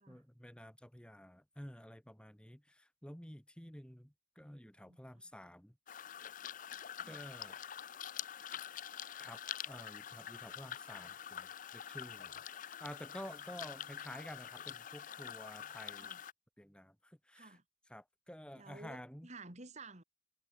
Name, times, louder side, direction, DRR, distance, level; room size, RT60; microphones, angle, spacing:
voice 1, 0.0-5.7 7.0-7.6 9.2-9.4 9.7-16.1 16.6-17.6 17.9-19.3, equal, 5° left, 1.8 m, -51 dB
sound 1, 5.9-16.3, left 9 dB, 40° left, 0.5 m, -46 dB
voice 2, 17.3-17.6 18.5-20.0, right 3 dB, 35° right, 3.2 m, -53 dB
head